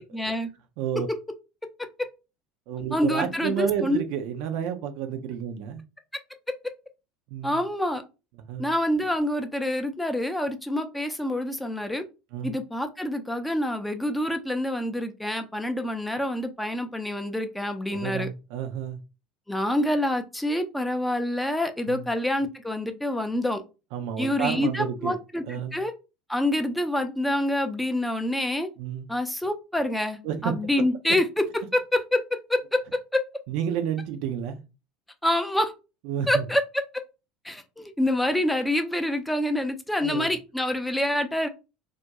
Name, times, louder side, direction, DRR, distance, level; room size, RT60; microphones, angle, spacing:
voice 1, 0.1-0.5 2.0-2.1 2.9-4.0 7.4-8.0 8.6-12.0 12.4-18.3 19.5-23.6 24.2-25.4 25.7-25.9 26.3-28.7 29.1-33.2 35.2-35.7 36.3-36.6 36.9-37.0 37.4-41.5, left 1 dB, 5° left, 0.5 m, -26 dB
voice 2, 0.8-1.1 2.7-5.8 7.3-7.6 8.4-8.7 12.3-12.6 17.9-19.0 21.9-22.1 23.9-25.2 25.5-25.8 28.8-29.1 30.2-30.5 33.5-34.7 36.0-36.4 40.0-40.3, right 8 dB, 60° right, 0.4 m, -30 dB
2.3 x 2.1 x 2.8 m
figure-of-eight pair, 70°, 0 cm